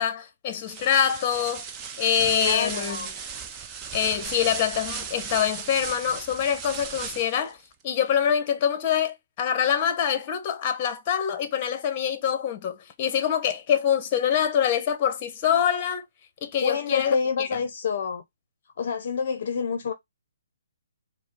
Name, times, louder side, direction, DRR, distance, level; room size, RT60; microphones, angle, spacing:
voice 1, 0.0-1.6 2.0-3.0 3.9-7.6 7.8-16.0 16.4-17.6, left 8 dB, 30° left, 0.9 m, -25 dB
sound 1, 0.6-7.5, right 6 dB, 20° right, 0.5 m, -36 dB
voice 2, 2.4-3.1 16.6-18.2 18.8-19.9, left 6 dB, 55° left, 0.6 m, -27 dB
4.9 x 2.0 x 3.7 m
hypercardioid pair, 150°, 0 cm